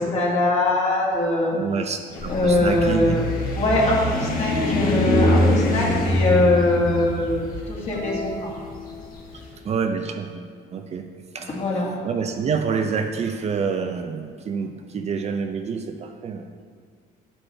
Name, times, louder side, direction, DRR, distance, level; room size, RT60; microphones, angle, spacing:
voice 1, 0.0-1.6 2.3-3.3 3.5-8.6 11.4-11.9, left 1 dB, 40° left, -4 dB, 2.2 m, -22 dB
voice 2, 1.5-3.1 3.8-4.0 9.6-11.1 11.3-11.5 12.0-16.5, right 5 dB, 40° right, 5 dB, 0.5 m, -27 dB
sound 1, 2.1-9.3, left 2 dB, 55° left, 1.4 m, -23 dB
sound 2, 7.9-9.7, left 3 dB, 25° left, 1.3 m, -37 dB
8.5 x 7.3 x 3.4 m, 2.1 s
cardioid pair, 110°, 17 cm